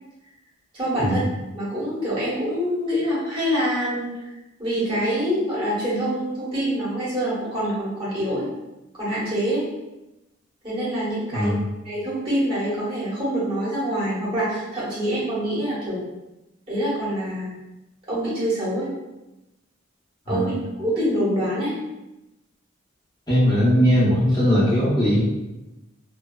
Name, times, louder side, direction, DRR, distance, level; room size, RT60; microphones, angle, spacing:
voice 1, 0.7-1.2 1.5-4.3 4.6-8.5 8.9-9.7 10.6-11.5 11.8-16.0 16.7-17.5 18.1-18.9 20.3-20.5 20.8-21.8, equal, 25° right, -10 dB, 1.2 m, -25 dB
voice 2, 23.3-25.2, equal, 20° left, -9 dB, 0.8 m, -19 dB
2.7 x 2.3 x 2.2 m, 0.98 s
head